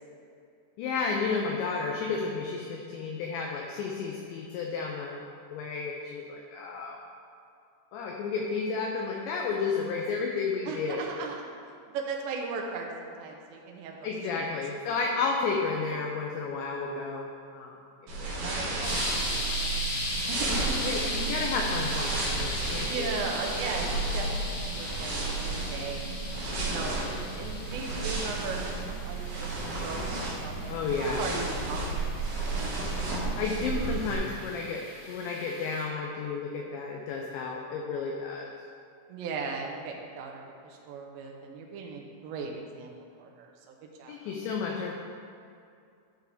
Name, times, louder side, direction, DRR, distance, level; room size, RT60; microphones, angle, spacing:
voice 1, 0.8-5.2 5.5-7.0 7.9-11.1 14.0-17.7 18.1-19.0 20.8-23.1 30.7-31.2 33.4-38.5 44.1-44.9, left 4 dB, 90° left, 0 dB, 2.5 m, -32 dB
voice 2, 10.7-14.5 18.3-19.7 20.3-20.9 22.4-22.5 22.8-26.2 26.6-30.1 30.4-31.9 33.6-34.3 39.1-42.9 43.2-44.1, right 4 dB, 80° right, 0 dB, 2.7 m, -38 dB
sound 1, 18.1-34.1, right 3 dB, 65° right, 3.4 m, -33 dB
sound 2, 18.8-35.8, left 1 dB, 65° left, 3.6 m, -38 dB
12.0 x 6.0 x 3.5 m, 2.4 s
omnidirectional pair, 5.9 m